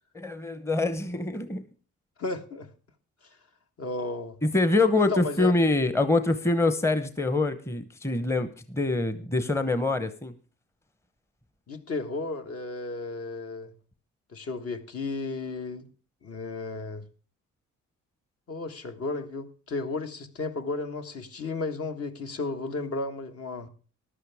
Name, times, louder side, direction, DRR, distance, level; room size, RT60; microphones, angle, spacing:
voice 1, 0.1-1.6 4.4-10.3, left 2 dB, 10° left, 11 dB, 0.9 m, -25 dB
voice 2, 2.2-2.7 3.8-4.4 4.9-5.5 11.7-13.7 14.3-15.9 16.2-17.0 18.5-23.7, left 3 dB, 50° left, 6 dB, 1.6 m, -33 dB
14.5 x 11.5 x 3.5 m, 0.38 s
cardioid pair, 90°, 30 cm